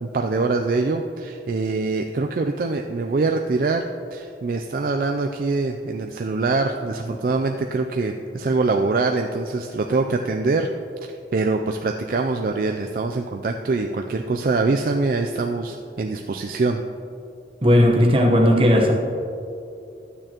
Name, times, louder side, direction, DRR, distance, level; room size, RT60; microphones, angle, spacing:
voice 1, 0.0-3.8 4.1-10.7 11.0-16.8, right 3 dB, 50° right, 3 dB, 0.3 m, -24 dB
voice 2, 17.6-18.9, equal, 30° right, 1 dB, 1.0 m, -16 dB
12.5 x 8.9 x 2.9 m, 2.5 s
head